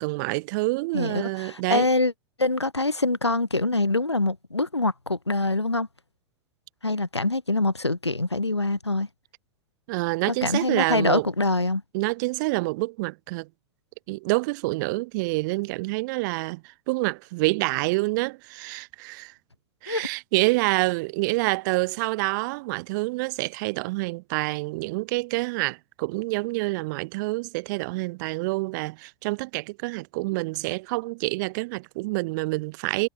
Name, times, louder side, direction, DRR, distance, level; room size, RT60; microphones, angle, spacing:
voice 1, 0.0-1.9 9.9-11.3 11.9-13.5 14.1-19.3 19.8-33.1, right 24 dB, 45° right, 2.5 m, -27 dB
voice 2, 0.9-2.1 2.4-5.9 6.8-9.1 10.3-11.8 19.9-20.1, left 2 dB, 85° left, 1.9 m, -24 dB
figure-of-eight pair, 95°, 14 cm